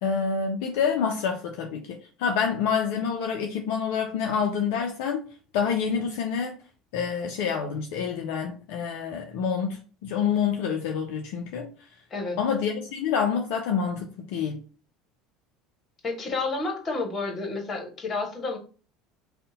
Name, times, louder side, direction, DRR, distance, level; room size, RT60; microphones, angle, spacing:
voice 1, 0.0-5.3 5.5-6.5 6.9-11.7 12.4-14.6, left 6 dB, 65° left, 2 dB, 0.4 m, -27 dB
voice 2, 16.0-18.6, left 3 dB, 35° left, 3 dB, 1.0 m, -30 dB
2.7 x 2.1 x 3.7 m, 0.37 s
hypercardioid pair, 70°, 0 cm